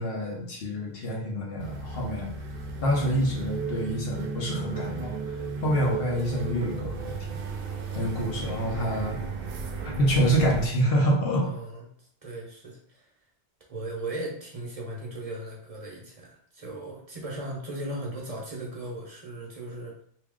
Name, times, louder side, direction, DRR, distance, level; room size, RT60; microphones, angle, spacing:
voice 1, 0.0-2.3 2.8-5.1 5.6-7.2 7.9-9.2 10.0-11.5, equal, 60° left, -1 dB, 1.0 m, -26 dB
sound 1, 1.6-10.7, right 4 dB, 65° right, 0.7 m, -34 dB
voice 2, 11.4-11.9 12.2-13.1 13.7-19.9, right 1 dB, 35° right, -2 dB, 0.8 m, -37 dB
2.9 x 2.7 x 3.6 m, 0.62 s
omnidirectional pair, 1.1 m